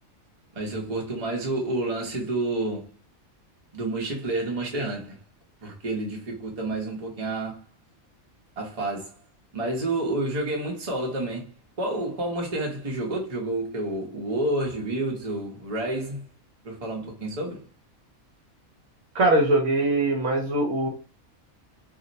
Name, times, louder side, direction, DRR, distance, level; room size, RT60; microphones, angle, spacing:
voice 1, 0.5-2.9 3.7-5.2 5.6-7.6 8.6-9.1 9.5-16.2 16.6-17.6, right 2 dB, 35° right, 0.7 m, -29 dB
voice 2, 19.1-20.9, right 2 dB, 65° right, 0.9 m, -22 dB
2.6 x 2.1 x 3.8 m
omnidirectional pair, 1.5 m